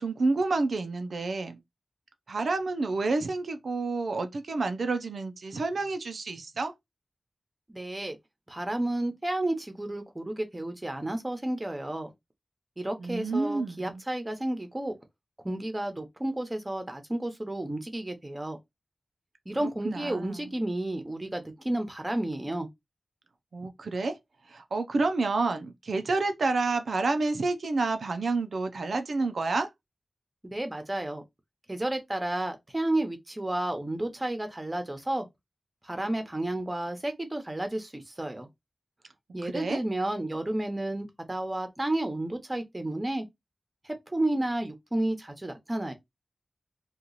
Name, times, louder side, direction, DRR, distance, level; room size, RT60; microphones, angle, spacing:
voice 1, 0.0-1.6 2.3-6.7 13.0-14.0 19.6-20.5 23.5-24.2 24.5-29.7 39.4-39.8, right 3 dB, 85° right, 0.5 m, -29 dB
voice 2, 7.7-8.2 8.5-12.1 12.8-14.9 15.4-18.6 19.5-22.7 30.4-31.2 31.7-35.3 35.8-38.5 39.3-43.3 43.9-45.9, right 1 dB, 20° right, 0.9 m, -31 dB
2.9 x 2.4 x 3.9 m
wide cardioid pair, 80°, 0 cm